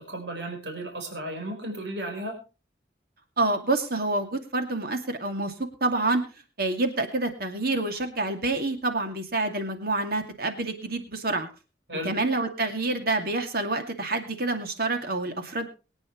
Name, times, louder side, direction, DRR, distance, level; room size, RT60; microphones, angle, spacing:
voice 1, 0.0-2.4 11.9-12.1, right 1 dB, 70° right, 2 dB, 4.6 m, -34 dB
voice 2, 3.4-5.5 5.8-6.2 6.6-11.5 12.0-15.7, right 2 dB, 55° right, 6 dB, 2.4 m, -27 dB
23.0 x 9.4 x 3.1 m, 0.32 s
head